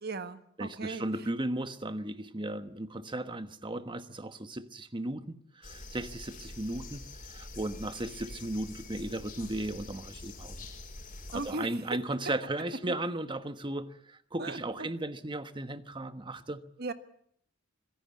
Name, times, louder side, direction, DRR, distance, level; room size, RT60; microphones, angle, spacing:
voice 1, 0.0-1.0 11.3-11.7 12.9-13.0 14.4-14.6 16.8-16.9, right 3 dB, 55° right, 10 dB, 1.5 m, -37 dB
voice 2, 0.6-10.7 11.3-16.6, right 1 dB, 25° right, 10 dB, 1.2 m, -36 dB
sound 1, 5.6-11.5, left 2 dB, 45° left, 5.1 m, -45 dB
25.0 x 16.5 x 8.5 m, 0.68 s
head